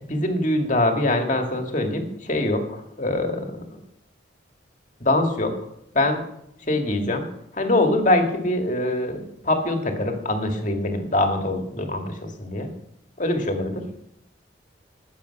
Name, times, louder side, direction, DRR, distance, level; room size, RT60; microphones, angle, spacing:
voice 1, 0.1-2.6 3.0-3.5 5.0-5.5 5.9-6.2 6.7-7.3 7.6-12.7 13.2-13.8, left 1 dB, 40° left, 4 dB, 2.0 m, -23 dB
19.0 x 7.2 x 5.9 m, 0.79 s
head